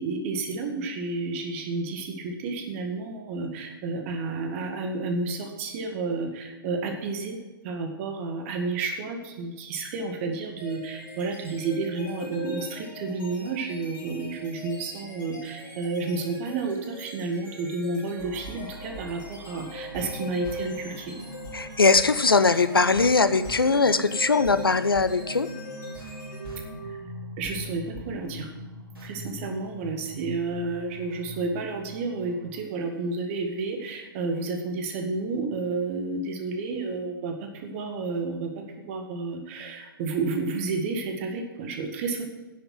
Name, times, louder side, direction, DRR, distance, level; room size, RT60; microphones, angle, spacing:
voice 1, 0.0-7.4 7.6-21.2 26.8-27.0 27.4-28.5 29.0-42.3, right 3 dB, 35° right, 4 dB, 2.0 m, -31 dB
sound 1, 10.6-27.2, left 1 dB, 50° left, 5.0 m, -41 dB
sound 2, 18.2-32.6, left 1 dB, 75° right, 3.7 m, -42 dB
voice 2, 21.5-25.5, left 4 dB, 75° left, 13 dB, 0.7 m, -21 dB
10.5 x 7.8 x 7.6 m, 1.2 s
figure-of-eight pair, 120°, 12 cm